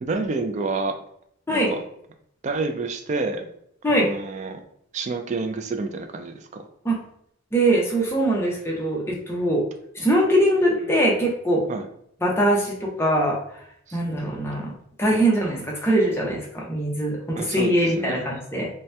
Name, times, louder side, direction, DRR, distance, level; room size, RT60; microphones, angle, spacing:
voice 1, 0.0-1.0 1.5-1.8 2.4-3.5 3.9-4.6 4.9-6.6 11.7-11.9 13.9-14.0 15.1-15.2 17.3-18.3, right 3 dB, 35° right, 6 dB, 0.3 m, -29 dB
voice 2, 7.5-9.6 10.0-11.6 12.2-13.4 13.9-14.7 15.0-18.7, right 1 dB, 10° left, -2 dB, 0.6 m, -22 dB
2.7 x 2.1 x 3.2 m, 0.69 s
head